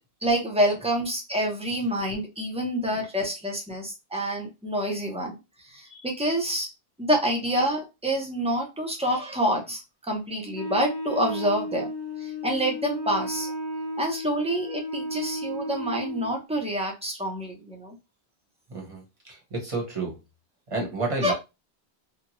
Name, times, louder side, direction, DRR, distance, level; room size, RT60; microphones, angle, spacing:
voice 1, 0.2-6.7 7.0-11.9 12.2-13.5 14.0-17.9 21.2-21.3, right 1 dB, 10° right, 0.5 m, -27 dB
Wind instrument woodwind instrument, 10.5-16.4, equal, 25° left, 0.7 m, -33 dB
voice 2, 18.7-19.0 19.3-20.2 20.7-21.3, right 3 dB, 30° right, 1.0 m, -30 dB
2.7 x 2.2 x 2.9 m
omnidirectional pair, 1.1 m